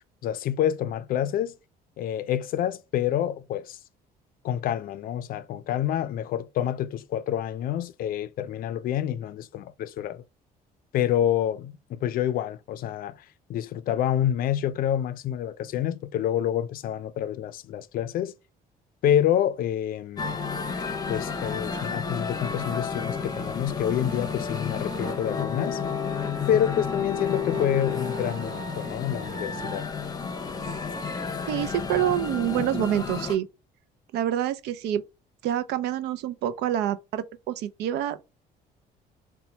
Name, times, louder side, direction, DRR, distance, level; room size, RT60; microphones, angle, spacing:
voice 1, 0.2-1.5 2.0-3.8 4.4-10.2 10.9-13.2 13.5-18.3 19.0-20.4 21.1-25.8 26.5-29.9, left 10 dB, 60° left, 0.4 m, -27 dB
sound 1, 20.2-33.4, left 5 dB, 25° left, 0.7 m, -31 dB
voice 2, 31.5-33.5 34.1-35.0 35.4-38.2, right 11 dB, 85° right, 0.5 m, -27 dB
4.2 x 2.2 x 2.8 m
cardioid pair, 110°, 17 cm